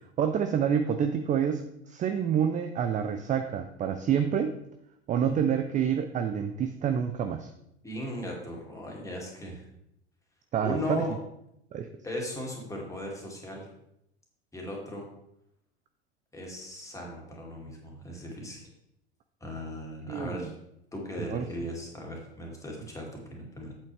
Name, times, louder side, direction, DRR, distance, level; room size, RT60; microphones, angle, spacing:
voice 1, 0.2-4.5 5.1-7.5 10.5-11.1 11.7-11.9 20.1-20.5 21.2-21.5, right 8 dB, 25° right, 8 dB, 0.5 m, -28 dB
voice 2, 7.8-9.7 10.6-11.1 12.0-13.7 14.5-15.1 16.3-18.6 19.4-20.5 20.9-23.8, left 1 dB, 10° left, -1 dB, 2.6 m, -37 dB
8.4 x 8.3 x 3.4 m, 0.79 s
figure-of-eight pair, 80°, 33 cm